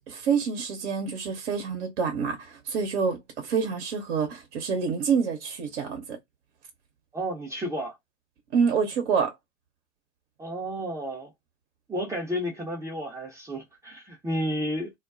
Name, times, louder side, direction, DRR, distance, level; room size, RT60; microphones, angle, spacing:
voice 1, 0.1-6.0 8.5-9.3, right 6 dB, 55° right, 1.0 m, -27 dB
voice 2, 7.1-8.0 10.4-11.3 11.9-14.9, equal, 10° right, 0.8 m, -32 dB
2.4 x 2.2 x 2.5 m
figure-of-eight pair, 85°, 35 cm